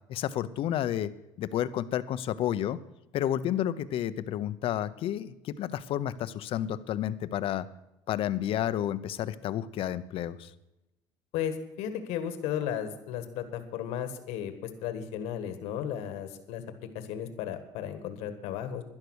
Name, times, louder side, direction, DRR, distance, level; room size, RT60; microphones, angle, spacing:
voice 1, 0.1-1.1 1.4-2.8 3.1-7.7 8.1-10.5, left 11 dB, 60° left, 14 dB, 0.8 m, -31 dB
voice 2, 11.3-16.6 16.9-18.8, left 9 dB, 85° left, 9 dB, 1.6 m, -34 dB
12.0 x 11.0 x 6.4 m, 0.92 s
cardioid pair, 105°, 10 cm